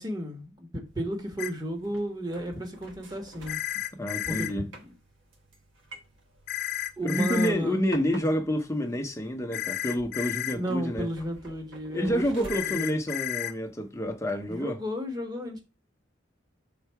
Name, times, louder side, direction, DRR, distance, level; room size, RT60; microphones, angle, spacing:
voice 1, 0.0-3.6 4.2-4.8 7.0-7.8 10.5-13.0 14.5-15.6, equal, 20° right, 1.2 m, -33 dB
sound 1, 0.9-14.5, right 1 dB, 75° right, 1.3 m, -50 dB
sound 2, 1.4-1.5 3.5-4.5 6.5-7.5 9.5-10.6 12.5-13.5, left 13 dB, 50° left, 0.5 m, -32 dB
voice 2, 4.0-4.7 7.0-11.1 11.9-14.8, equal, 15° left, 0.8 m, -28 dB
5.7 x 4.0 x 4.6 m
head